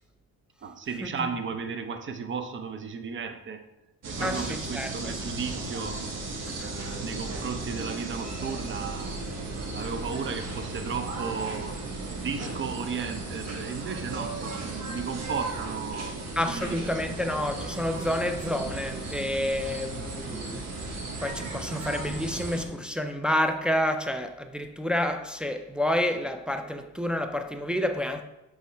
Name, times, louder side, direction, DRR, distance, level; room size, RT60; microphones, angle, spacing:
voice 1, 0.6-3.6 4.1-6.0 6.6-9.2 9.7-11.7 12.1-16.2 16.4-17.2, right 5 dB, 40° right, 0.7 m, -35 dB
sound 1, 4.0-22.7, right 3 dB, 60° right, 1.4 m, -35 dB
voice 2, 4.2-5.2 6.5-6.7 16.4-28.2, left 1 dB, 5° right, 0.4 m, -29 dB
8.1 x 3.6 x 3.3 m
cardioid pair, 90°, 30 cm